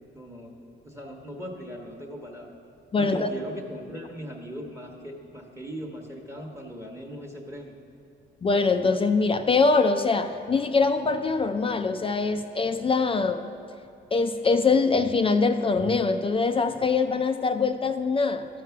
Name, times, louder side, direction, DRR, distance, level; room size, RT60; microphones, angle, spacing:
voice 1, 0.1-0.5 0.8-2.5 3.0-7.8, equal, 15° right, 1 dB, 1.0 m, -39 dB
voice 2, 2.9-3.3 8.4-13.5 14.1-18.5, left 4 dB, 30° left, 8 dB, 0.4 m, -23 dB
12.5 x 4.6 x 5.8 m, 2.7 s
cardioid pair, 90°, 20 cm